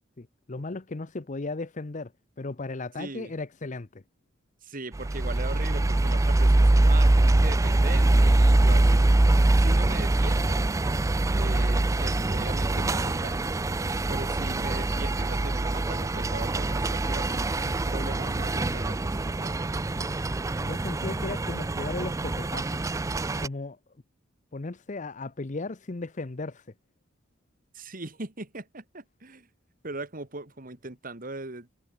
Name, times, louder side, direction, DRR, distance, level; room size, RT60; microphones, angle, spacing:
voice 1, 0.2-2.1 2.4-4.0 20.6-22.8 23.1-23.8 24.5-26.6, left 3 dB, 40° left, 0.8 m, -36 dB
voice 2, 3.0-3.3 4.6-9.1 9.6-10.6 11.3-13.6 14.1-19.7 27.7-29.5 29.8-31.7, right 2 dB, 45° right, 2.3 m, -39 dB
sound 1, 4.9-23.5, right 2 dB, 15° right, 0.4 m, -24 dB
head